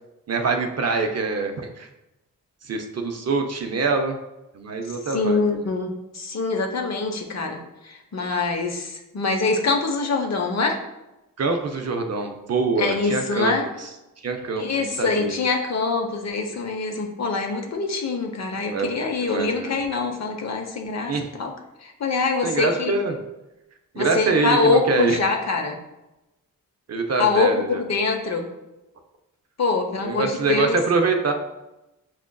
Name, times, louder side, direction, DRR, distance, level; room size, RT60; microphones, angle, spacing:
voice 1, 0.3-1.9 2.6-4.2 4.5-5.4 11.4-13.5 14.2-15.3 18.7-19.7 21.1-21.3 22.4-23.2 23.9-25.2 26.9-27.8 30.0-31.3, right 3 dB, 45° right, 4 dB, 0.5 m, -24 dB
voice 2, 5.1-7.6 7.8-10.8 12.8-13.7 14.6-21.5 21.8-23.0 24.0-25.8 27.2-28.5 29.6-30.8, left 4 dB, 50° left, 3 dB, 0.7 m, -24 dB
5.9 x 2.4 x 2.2 m, 0.96 s
cardioid pair, 80°, 35 cm